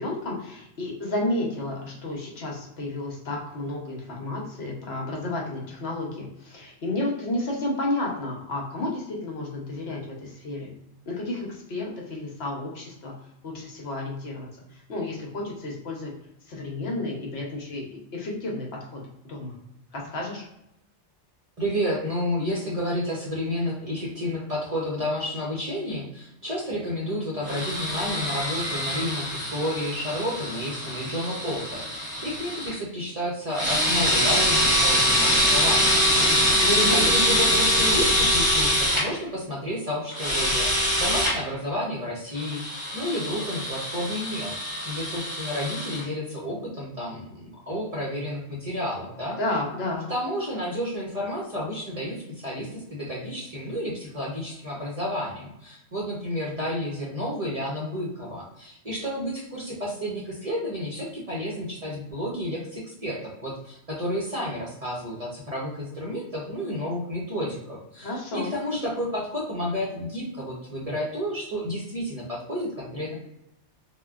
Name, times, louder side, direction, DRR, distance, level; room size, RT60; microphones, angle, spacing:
voice 1, 0.0-10.7 11.1-13.1 13.4-16.1 16.5-19.5 19.9-20.4 36.6-37.1 49.4-50.1 68.0-68.5, left 2 dB, 65° left, -2 dB, 1.0 m, -31 dB
voice 2, 21.6-36.4 36.9-40.7 41.0-42.6 42.9-49.4 50.1-73.1, equal, 40° right, -4 dB, 0.6 m, -31 dB
sound 1, 27.5-32.7 33.5-39.0 40.1-41.3 42.4-46.0, equal, 20° right, 0.9 m, -24 dB
3.5 x 2.2 x 2.3 m, 0.81 s
omnidirectional pair, 1.2 m